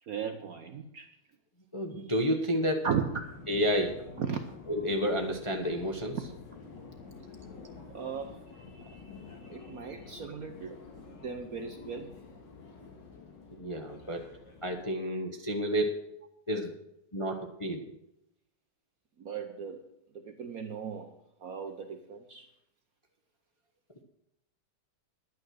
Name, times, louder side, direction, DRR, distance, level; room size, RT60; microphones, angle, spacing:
voice 1, 0.0-1.1 2.8-3.1 4.2-4.4 6.1-6.2 7.9-8.4 9.5-10.8 11.2-12.1 19.2-19.8 20.1-21.1 21.4-22.5, right 7 dB, 60° right, 6 dB, 1.0 m, -36 dB
voice 2, 1.7-2.8 3.5-4.0 4.7-6.2 13.5-14.3 14.6-16.0 16.5-16.7 17.1-17.8, equal, 25° left, 2 dB, 0.7 m, -30 dB
Subway metro underground, 2.9-14.8, left 4 dB, 60° left, 2.2 m, -49 dB
11.0 x 9.3 x 6.4 m, 0.82 s
omnidirectional pair, 2.3 m